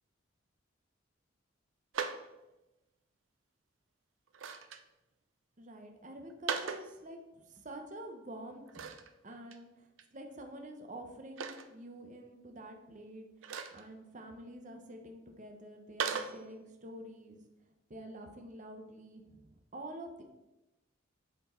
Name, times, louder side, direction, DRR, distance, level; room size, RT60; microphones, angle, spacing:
sound 1, 1.9-2.2 4.3-4.8 6.3-6.9 8.7-9.1 9.5-9.6 10.0-10.1 11.4-11.7 13.4-13.8 16.0-16.4, right 6 dB, 80° right, 0.5 m, -37 dB
voice 1, 5.6-8.9 9.2-13.3 13.7-17.4 17.9-20.2, right 1 dB, 40° right, 4 dB, 0.9 m, -48 dB
7.9 x 4.4 x 4.4 m, 1.0 s
head